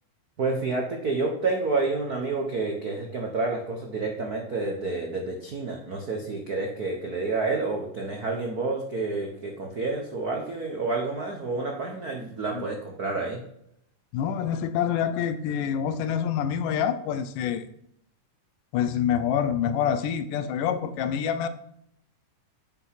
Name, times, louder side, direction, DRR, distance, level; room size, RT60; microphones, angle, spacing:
voice 1, 0.4-13.4, right 3 dB, 75° right, 1 dB, 0.8 m, -29 dB
voice 2, 14.1-17.7 18.7-21.5, left 8 dB, 80° left, 11 dB, 2.4 m, -26 dB
9.2 x 9.0 x 5.8 m, 0.76 s
omnidirectional pair, 3.8 m